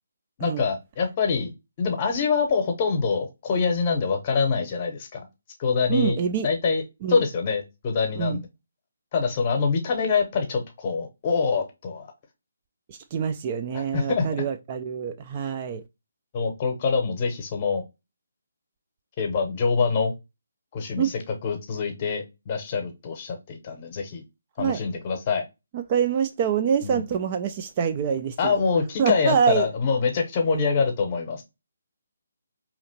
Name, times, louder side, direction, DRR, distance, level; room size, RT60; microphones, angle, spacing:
voice 1, 0.4-1.5 1.8-5.2 5.6-6.2 6.4-6.8 7.1-8.5 9.1-12.1 13.7-14.3 16.3-17.8 19.2-20.1 20.7-21.1 21.4-24.2 24.6-25.4 26.8-27.0 28.4-31.4, left 5 dB, 30° left, 0.9 m, -25 dB
voice 2, 5.9-6.5 7.0-7.2 8.2-8.4 12.9-15.8 21.0-21.1 24.6-24.8 25.7-28.5 29.0-29.7, right 7 dB, 25° right, 0.3 m, -25 dB
4.8 x 2.9 x 2.7 m
figure-of-eight pair, 145°, 0 cm